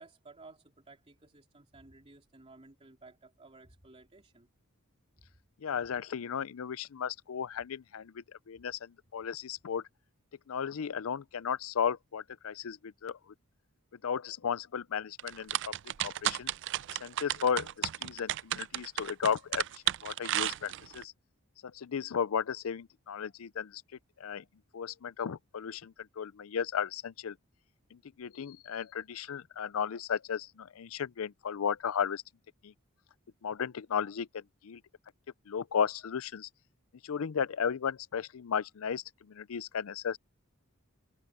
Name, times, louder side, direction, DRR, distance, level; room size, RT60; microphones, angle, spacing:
voice 1, 0.0-4.5 5.2-5.3, right 3 dB, 30° right, 3.0 m, -55 dB
voice 2, 5.6-9.8 10.5-13.2 14.0-15.6 16.0-16.5 16.9-21.1 21.6-23.8 24.2-24.4 24.7-27.4 27.9-32.2 32.6-32.7 33.4-34.8 35.5-36.5 37.0-40.2, left 7 dB, 75° left, 0.5 m, -35 dB
sound 1, 15.2-21.0, right 12 dB, 55° right, 0.4 m, -33 dB
head